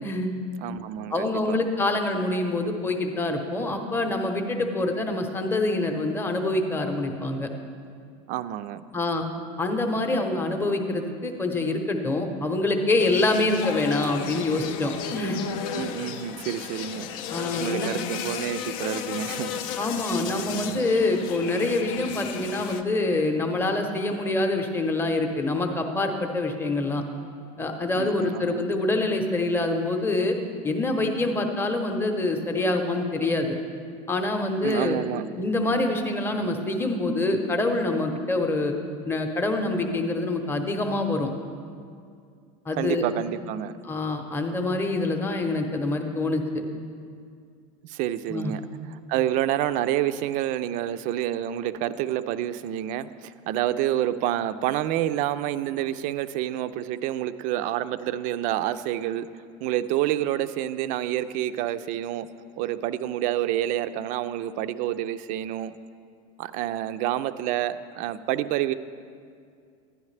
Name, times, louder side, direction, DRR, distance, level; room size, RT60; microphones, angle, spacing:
voice 1, 0.6-1.6 8.3-8.9 15.7-19.6 28.0-28.7 34.6-35.3 42.8-43.8 47.8-48.6 48.9-59.3 59.6-62.3 62.6-65.8 66.4-68.7, right 12 dB, 50° right, 12 dB, 0.4 m, -28 dB
voice 2, 1.1-7.5 8.9-9.3 9.6-15.4 17.3-17.9 19.8-27.0 27.6-30.4 30.6-33.6 34.1-35.0 35.4-38.7 39.0-41.3 42.7-43.1 43.8-46.6 48.3-48.5, left 2 dB, 15° left, 4 dB, 0.8 m, -26 dB
sound 1, 13.0-22.8, left 8 dB, 60° left, 0.5 m, -34 dB
10.5 x 10.5 x 3.3 m, 2.3 s
supercardioid pair, 130°, 17 cm